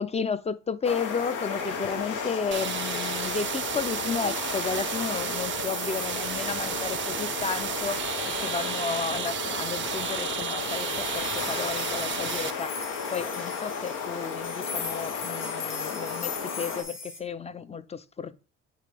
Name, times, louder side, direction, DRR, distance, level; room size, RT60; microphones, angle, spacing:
voice 1, 0.0-12.8 13.1-18.4, left 5 dB, 20° left, 0.4 m, -33 dB
sound 1, 0.8-16.8, left 5 dB, 90° left, 1.0 m, -34 dB
sound 2, 2.5-12.5, right 10 dB, 40° right, 0.4 m, -33 dB
sound 3, 10.9-17.2, left 6 dB, 55° left, 1.2 m, -39 dB
8.5 x 3.4 x 3.4 m
cardioid pair, 90°, 30 cm